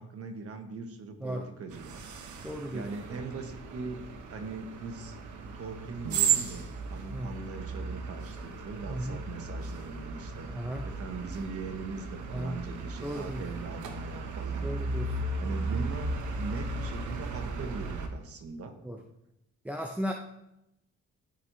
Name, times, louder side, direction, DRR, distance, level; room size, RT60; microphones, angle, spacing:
voice 1, 0.0-2.1 2.7-5.2 5.5-10.5 10.8-14.7 15.4-18.7, right 4 dB, 50° right, 6 dB, 1.2 m, -41 dB
sound 1, 1.7-18.1, right 4 dB, 75° right, 1.0 m, -35 dB
voice 2, 2.4-2.9 7.1-7.3 8.9-9.2 10.5-10.9 12.3-12.6 13.0-13.4 14.6-15.3 18.8-19.0 19.6-20.1, equal, 5° right, 1 dB, 0.6 m, -35 dB
13.0 x 4.6 x 2.8 m, 0.86 s
cardioid pair, 90°, 30 cm